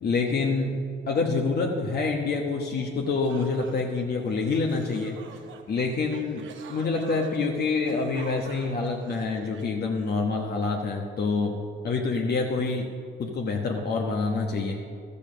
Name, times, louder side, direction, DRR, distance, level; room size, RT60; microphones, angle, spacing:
voice 1, 0.0-5.2 5.7-12.9 13.2-14.8, left 4 dB, 55° left, 0 dB, 1.2 m, -27 dB
sound 1, 2.7-2.8 3.1-10.2, right 6 dB, 75° right, 1.0 m, -46 dB
12.5 x 7.0 x 6.7 m, 2.1 s
cardioid pair, 90°, 20 cm